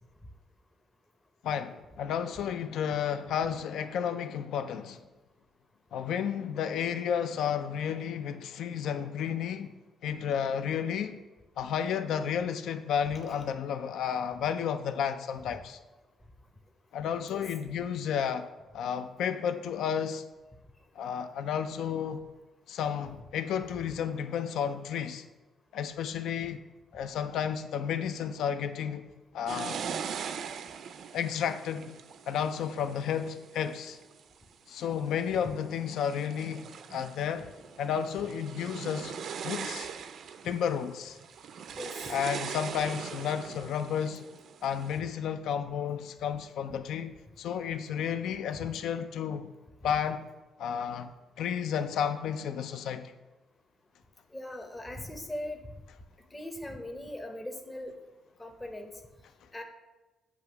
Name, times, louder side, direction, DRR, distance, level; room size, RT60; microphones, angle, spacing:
voice 1, 1.4-5.0 5.9-9.7 10.0-11.2 11.6-15.8 16.9-18.5 18.7-20.3 21.0-22.3 22.7-25.2 25.7-26.6 26.9-29.8 31.1-32.0 32.3-34.0 34.7-37.5 37.8-39.2 39.4-39.9 40.4-41.2 42.1-44.2 44.6-49.5 49.8-50.3 50.6-53.1, left 8 dB, 80° left, 0.4 m, -32 dB
sound 1, 29.5-34.2 34.8-35.3 35.8-45.0, right 7 dB, 65° right, 0.4 m, -41 dB
voice 2, 54.3-55.6 56.3-57.9 58.4-58.9 59.5-59.6, left 1 dB, 20° left, 0.7 m, -39 dB
7.8 x 2.9 x 5.7 m
cardioid pair, 90°, 0 cm